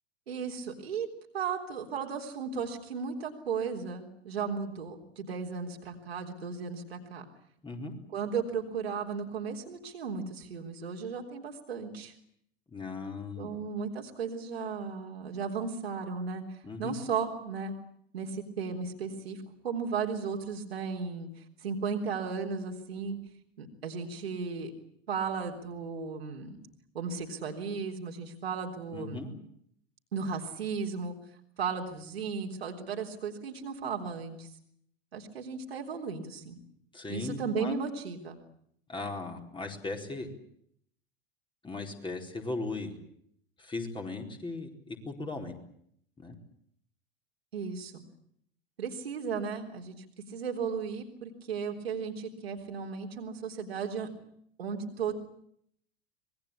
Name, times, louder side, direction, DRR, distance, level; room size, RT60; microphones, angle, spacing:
voice 1, 0.3-1.1 1.3-7.2 8.1-12.1 13.4-17.7 18.1-19.4 19.6-21.3 21.6-23.2 23.6-24.7 25.1-26.6 26.9-29.3 30.1-31.1 31.6-34.5 35.1-36.6 37.1-38.4 47.5-48.0 48.8-50.0 50.3-54.1 54.6-55.1, right 5 dB, 75° right, 2 dB, 3.8 m, -35 dB
voice 2, 12.7-13.5 16.6-16.9 28.9-29.3 36.9-37.8 38.9-40.3 41.6-42.9 43.6-45.5 46.2-46.3, left 3 dB, 15° left, 2 dB, 4.5 m, -37 dB
25.0 x 21.0 x 8.7 m, 0.69 s
figure-of-eight pair, 80°, 31 cm